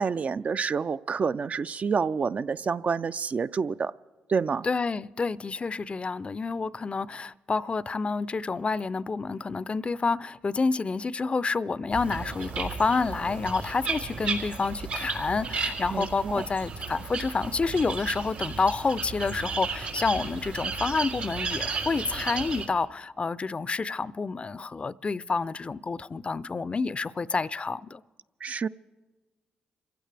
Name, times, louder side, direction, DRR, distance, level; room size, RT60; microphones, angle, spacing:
voice 1, 0.0-3.9 4.3-4.6 15.9-16.4 28.4-28.7, right 5 dB, 50° right, 0.4 m, -28 dB
voice 2, 4.6-28.0, left 4 dB, 35° left, 0.4 m, -29 dB
sound 1, 11.9-22.6, right 4 dB, 90° right, 3.6 m, -34 dB
27.5 x 15.5 x 3.4 m
supercardioid pair, 55°, 3 cm